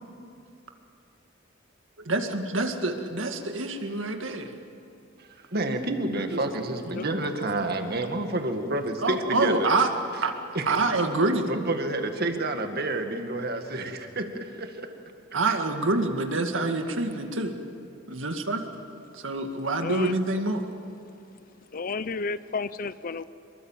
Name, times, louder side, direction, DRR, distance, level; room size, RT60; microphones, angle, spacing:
voice 1, 2.1-4.5 6.3-6.4 6.7-6.8 9.0-9.9 10.2-10.3 10.7-11.5 15.3-17.6 18.1-18.6 19.1-20.6, right 2 dB, 75° right, 5 dB, 2.1 m, -26 dB
voice 2, 5.2-9.7 10.5-10.8 11.5-14.9 15.5-15.6, right 2 dB, 50° right, 6 dB, 2.0 m, -29 dB
voice 3, 19.8-20.1 21.7-23.2, left 4 dB, 45° left, 15 dB, 0.6 m, -32 dB
26.0 x 23.0 x 7.4 m, 2.7 s
head